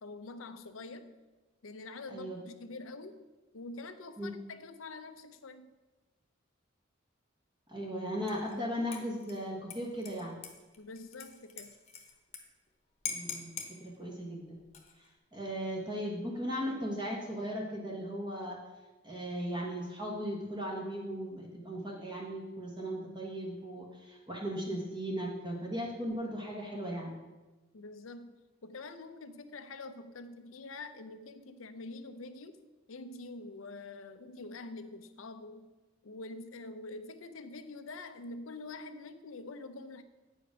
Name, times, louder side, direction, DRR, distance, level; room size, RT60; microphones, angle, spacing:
voice 1, 0.0-1.2 1.6-3.2 3.5-5.7 10.8-11.7 27.7-28.4 28.6-32.6 32.9-35.7 36.0-40.0, left 3 dB, 90° left, 10 dB, 0.7 m, -46 dB
voice 2, 7.7-10.4 13.1-14.6 15.0-15.1 15.3-18.6 19.0-27.1, equal, 25° right, -2 dB, 1.3 m, -37 dB
Dishes pots and pans / Liquid, 8.3-8.6 8.9-12.4 12.7-12.8 13.1-13.7 14.6-15.1, left 6 dB, 35° left, 1.1 m, -43 dB
8.8 x 5.0 x 6.0 m, 1.2 s
head